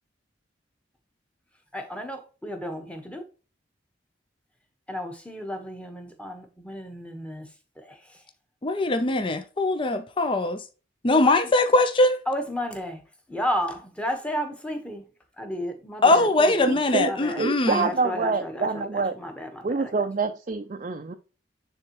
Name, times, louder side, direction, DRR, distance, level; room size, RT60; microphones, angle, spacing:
voice 1, 1.7-3.2 4.9-7.5 7.8-8.0 11.1-11.4 12.3-13.0 13.3-15.1 15.4-16.7 17.0-18.7 18.9-19.9, equal, 5° left, 1.1 m, -32 dB
voice 2, 8.6-10.6 11.0-12.2 16.0-17.9, left 2 dB, 30° left, 0.5 m, -21 dB
voice 3, 16.9-19.2 19.6-21.1, right 4 dB, 40° right, 0.5 m, -26 dB
9.7 x 3.6 x 3.0 m
head